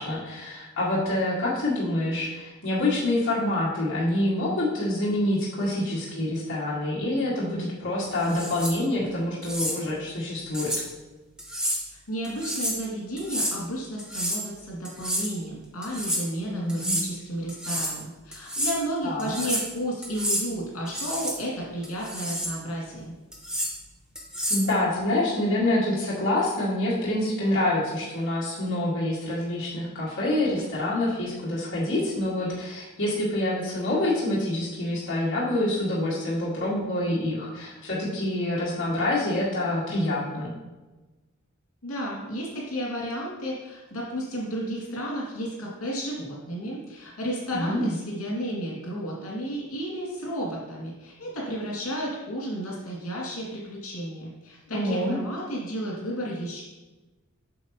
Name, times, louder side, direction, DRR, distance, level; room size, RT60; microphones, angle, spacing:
voice 1, 0.0-10.8 16.5-17.0 19.0-19.4 24.5-40.5 47.5-47.9 54.7-55.2, left 1 dB, 55° left, -8 dB, 2.0 m, -26 dB
sound 1, 8.2-8.8 9.4-9.8 10.5-10.8 11.4-11.8 12.2-12.8 13.2-13.6 14.0-14.5 14.8-15.3 15.8-16.2 16.7-17.1 17.5-18.0 18.3-18.8 19.2-19.7 20.0-20.5 20.9-21.4 21.8-22.5 23.3-23.7 24.2-24.7, equal, 5° right, 1.0 m, -29 dB
voice 2, 11.9-23.1 41.8-56.6, equal, 80° left, -4 dB, 2.4 m, -32 dB
8.2 x 6.2 x 3.0 m, 1.1 s
head